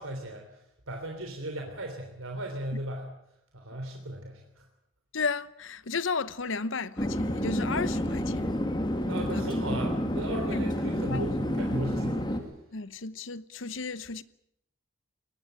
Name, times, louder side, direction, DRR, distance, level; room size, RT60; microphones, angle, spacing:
voice 1, 0.0-3.1 3.5-4.7 9.1-12.5, right 1 dB, 80° right, 3.4 m, -36 dB
voice 2, 5.1-8.5 9.3-9.4 10.5-10.6 10.9-11.3 12.7-14.2, left 4 dB, 65° left, 0.9 m, -33 dB
Chatter / Fixed-wing aircraft airplane, 7.0-12.4, equal, 20° left, 2.5 m, -29 dB
22.5 x 19.5 x 9.0 m
head